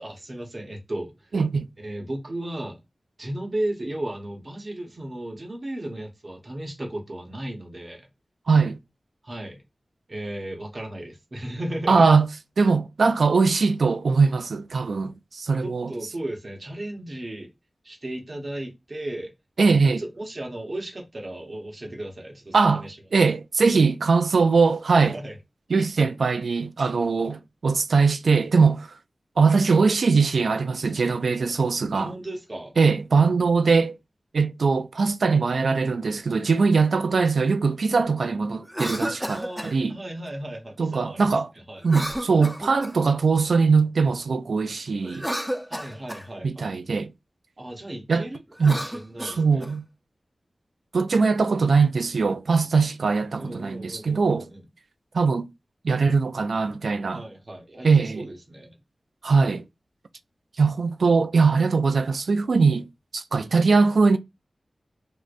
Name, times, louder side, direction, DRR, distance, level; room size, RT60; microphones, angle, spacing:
voice 1, 0.0-1.3 1.8-2.8 3.2-8.1 9.2-9.6 10.1-12.0 15.6-17.5 17.8-19.3 19.8-23.0 25.0-25.4 31.9-32.7 39.3-41.3 41.7-41.9 45.7-46.7 47.6-49.7 53.4-54.6 57.1-58.7, right 1 dB, 45° right, 0.9 m, -35 dB
voice 2, 1.3-1.7 8.5-8.8 11.9-12.3 12.6-15.9 19.6-20.0 22.5-22.9 23.1-25.2 25.7-28.9 29.4-32.1 32.8-34.0 34.3-39.9 40.8-41.5 41.8-45.3 46.4-47.1 48.1-48.2 48.6-48.8 49.2-49.8 50.9-54.5 55.1-55.5 55.8-57.2 57.8-58.2 59.2-59.6 60.6-62.9 63.1-64.2, right 4 dB, 85° right, 0.3 m, -21 dB
Cough, 38.6-39.7 41.8-43.1 45.0-46.3 48.5-49.7, equal, 10° right, 0.6 m, -32 dB
4.8 x 2.1 x 2.5 m
wide cardioid pair, 80°, 0 cm